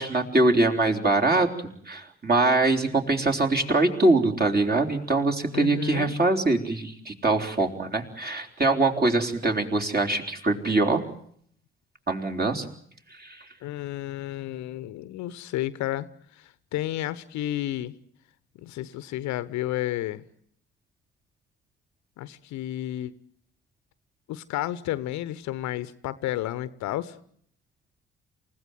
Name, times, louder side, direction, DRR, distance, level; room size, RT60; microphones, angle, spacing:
voice 1, 0.0-11.0 12.1-12.7 13.1-13.5, right 2 dB, 30° right, 3 dB, 3.8 m, -23 dB
voice 2, 5.5-6.1 13.6-17.9 18.6-20.2 22.2-23.1 24.3-27.2, left 14 dB, 60° left, 17 dB, 1.0 m, -32 dB
28.5 x 16.0 x 9.3 m, 0.64 s
figure-of-eight pair, 45°, 32 cm